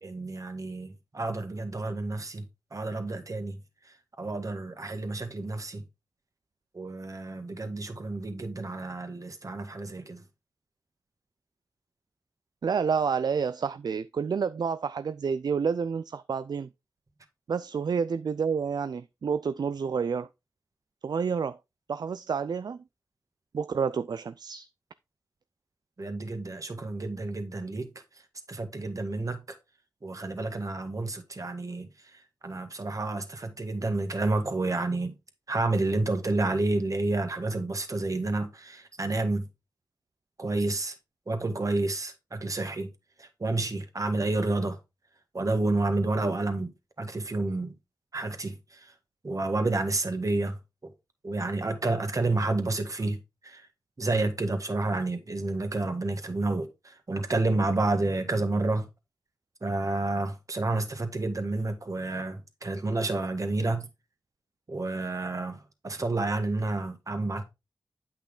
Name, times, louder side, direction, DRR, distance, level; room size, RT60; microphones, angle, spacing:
voice 1, 0.0-2.5 2.7-3.6 3.9-5.8 6.7-10.2 26.0-27.9 28.5-29.6 30.0-35.1 35.5-39.5 40.4-41.0 41.3-42.9 43.2-44.8 45.3-46.7 47.0-47.8 48.1-48.9 49.2-50.9 51.2-53.7 54.0-58.9 59.6-63.9 64.7-67.4, right 2 dB, 45° right, 1.8 m, -30 dB
voice 2, 12.6-16.7 17.5-20.3 21.0-21.6 21.9-22.8 23.5-24.7, right 6 dB, 60° right, 0.4 m, -29 dB
8.7 x 5.7 x 3.8 m
cardioid pair, 60°, 8 cm